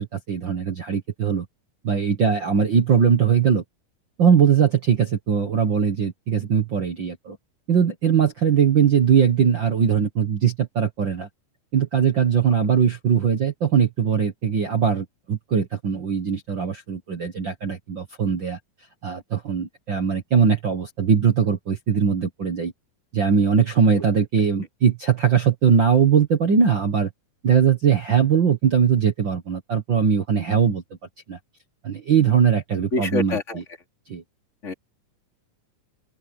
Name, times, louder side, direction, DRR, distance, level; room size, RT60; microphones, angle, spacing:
voice 1, 0.0-1.4 1.8-3.6 4.2-7.4 7.7-11.3 11.7-18.6 19.0-22.7 23.1-27.1 27.4-30.8 31.3-31.4 31.8-33.4 34.1-34.2, right 7 dB, 60° right, 1.2 m, -20 dB
voice 2, 32.9-33.6 34.6-34.7, left 3 dB, 20° left, 2.8 m, -25 dB
open air
omnidirectional pair, 4.3 m